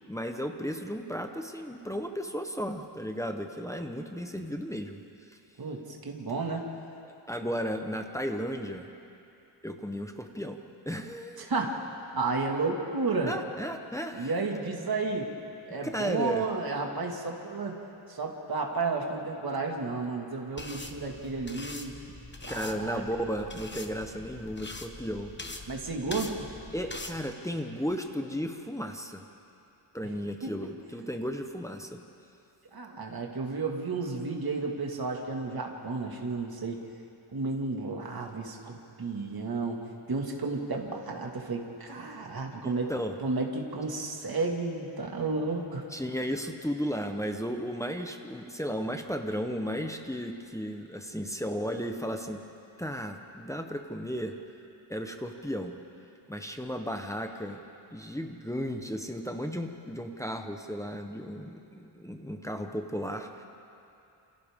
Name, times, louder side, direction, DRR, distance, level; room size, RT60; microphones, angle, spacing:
voice 1, 0.1-5.0 7.3-8.9 9.6-10.6 10.9-11.5 13.3-14.6 15.8-16.5 22.5-25.3 26.7-29.2 29.9-32.0 42.6-43.2 45.9-52.4 52.8-54.3 54.9-55.7 56.3-57.6 57.9-63.4, equal, 5° left, 4 dB, 0.9 m, -34 dB
voice 2, 5.6-6.7 11.4-11.8 12.1-13.3 14.1-15.3 15.7-17.8 18.1-21.9 22.4-23.3 25.7-26.4 30.4-30.5 32.7-36.8 37.3-42.9 43.2-45.9, right 3 dB, 45° right, 0 dB, 2.1 m, -32 dB
sound 1, 20.6-27.2, left 2 dB, 20° left, 1.2 m, -43 dB
28.0 x 28.0 x 3.7 m, 2.8 s
wide cardioid pair, 165°, 49 cm